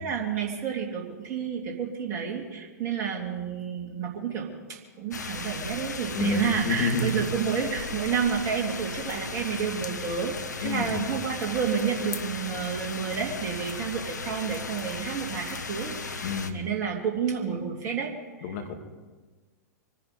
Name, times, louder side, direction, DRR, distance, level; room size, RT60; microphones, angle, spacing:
voice 1, 0.0-10.3 10.6-18.1, right 7 dB, 35° right, 0 dB, 2.8 m, -30 dB
sound 1, 5.1-16.5, left 4 dB, 80° left, 1.3 m, -36 dB
voice 2, 6.1-7.2 10.6-11.1 16.2-16.6 18.4-18.8, left 5 dB, 50° left, 4 dB, 2.5 m, -29 dB
25.0 x 10.5 x 5.3 m, 1.4 s
figure-of-eight pair, 105°, 9 cm